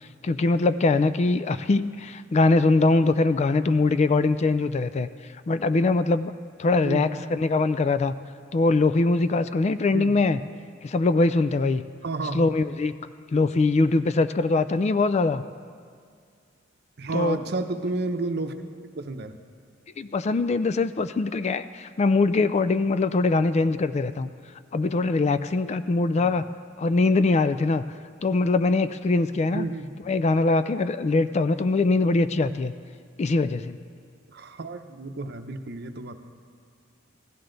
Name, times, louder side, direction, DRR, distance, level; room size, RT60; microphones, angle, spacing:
voice 1, 0.2-5.1 5.5-6.3 6.6-8.1 8.5-10.4 10.8-11.9 12.3-12.9 13.3-15.4 17.1-17.4 20.0-24.3 24.7-26.4 26.8-27.8 28.2-29.7 30.1-32.7 33.2-33.8, left 3 dB, 35° left, 13 dB, 0.3 m, -22 dB
voice 2, 6.8-7.2 9.9-10.1 12.0-12.5 17.0-18.6 19.0-19.3 26.1-26.3 29.5-30.0 34.3-36.2, right 2 dB, 60° right, 7 dB, 0.8 m, -31 dB
16.5 x 13.5 x 3.9 m, 2.1 s
head